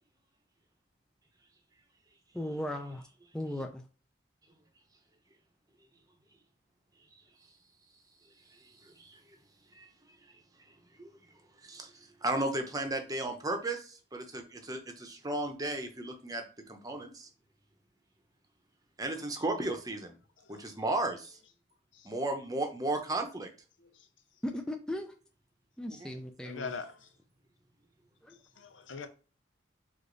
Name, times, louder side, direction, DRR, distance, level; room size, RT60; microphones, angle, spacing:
voice 1, 2.3-3.0 3.3-3.8 24.4-25.1 25.8-26.7 28.2-28.4, left 1 dB, 5° left, 0.4 m, -37 dB
voice 2, 12.2-13.8 14.1-17.3 19.0-20.1 20.5-21.3 22.0-23.5, right 2 dB, 20° right, 0.8 m, -34 dB
voice 3, 26.5-27.1 28.6-29.1, left 4 dB, 90° left, 0.7 m, -42 dB
5.0 x 2.5 x 3.9 m
head